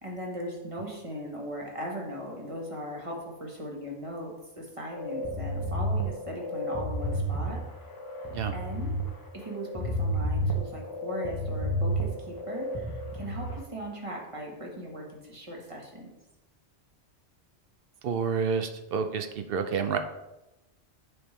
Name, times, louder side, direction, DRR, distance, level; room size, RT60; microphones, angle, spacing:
voice 1, 0.0-7.6 8.5-9.1 9.3-16.1, equal, 30° right, -1 dB, 1.4 m, -39 dB
sound 1, 4.9-13.5, equal, 25° left, 0.7 m, -31 dB
voice 2, 18.0-20.0, right 6 dB, 65° right, 7 dB, 0.7 m, -29 dB
7.9 x 5.3 x 3.2 m, 0.97 s
omnidirectional pair, 1.1 m